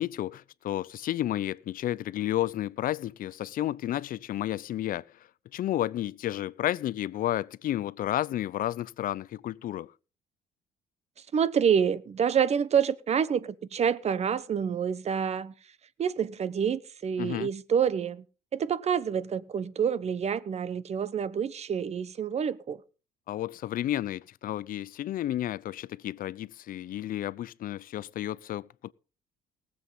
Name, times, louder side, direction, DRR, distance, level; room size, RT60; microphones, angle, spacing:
voice 1, 0.0-5.0 5.5-9.9 17.2-17.5 23.3-28.9, left 13 dB, 55° left, 0.6 m, -31 dB
voice 2, 11.3-15.5 16.0-18.2 18.5-22.8, right 7 dB, 40° right, 1.0 m, -27 dB
19.0 x 7.8 x 5.6 m
cardioid pair, 110°, 17 cm